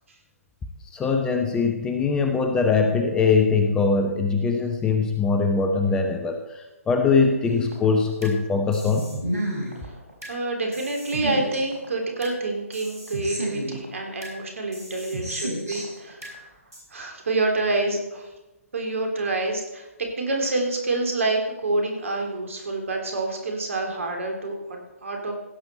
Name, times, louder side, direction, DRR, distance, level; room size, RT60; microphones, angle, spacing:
voice 1, 0.9-9.1, left 4 dB, 10° left, 5 dB, 0.7 m, -22 dB
sound 1, 7.4-8.4 8.7-10.4 10.7-12.4 12.7-14.4 14.7-16.4 16.7-16.8, right 1 dB, 85° right, 4.9 m, -32 dB
voice 2, 10.3-16.4 16.9-18.3 18.7-19.9 20.2-25.3, right 2 dB, 60° right, 2 dB, 3.3 m, -27 dB
16.0 x 7.9 x 4.3 m, 0.99 s
figure-of-eight pair, 140°, 8 cm